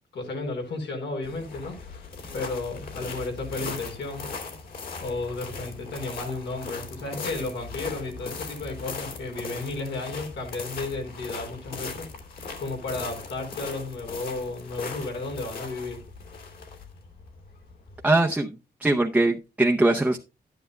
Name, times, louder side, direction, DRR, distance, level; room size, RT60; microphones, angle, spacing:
voice 1, 0.1-4.3 5.0-12.1 12.6-16.0, left 3 dB, 85° left, 2 dB, 4.5 m, -33 dB
sound 1, 1.2-18.1, left 4 dB, 55° left, 2.7 m, -39 dB
voice 2, 18.0-18.5 18.8-20.2, right 2 dB, 5° right, 2 dB, 0.6 m, -21 dB
12.0 x 10.0 x 2.3 m, 0.28 s
wide cardioid pair, 155°, 18 cm